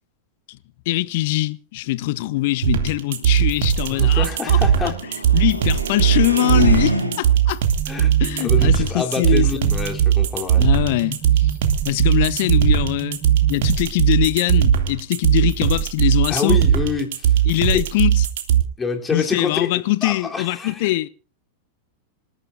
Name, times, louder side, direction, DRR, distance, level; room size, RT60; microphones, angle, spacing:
voice 1, 0.9-4.9 5.3-7.6 8.2-9.7 10.6-11.5 11.8-13.2 13.5-16.6 17.5-18.3 19.1-21.1, left 18 dB, 50° left, 0.9 m, -22 dB
sound 1, 2.0-7.5, right 1 dB, 85° right, 3.3 m, -28 dB
sound 2, 2.6-18.6, right 9 dB, 55° right, 2.5 m, -18 dB
voice 2, 3.9-5.0 7.9-8.1 8.4-10.6 16.3-17.3 18.8-19.7 20.0-20.9, left 4 dB, 15° left, 3.4 m, -26 dB
sound 3, 7.5-14.4, right 7 dB, 25° right, 5.1 m, -35 dB
26.5 x 14.0 x 2.6 m
figure-of-eight pair, 90°, 0 cm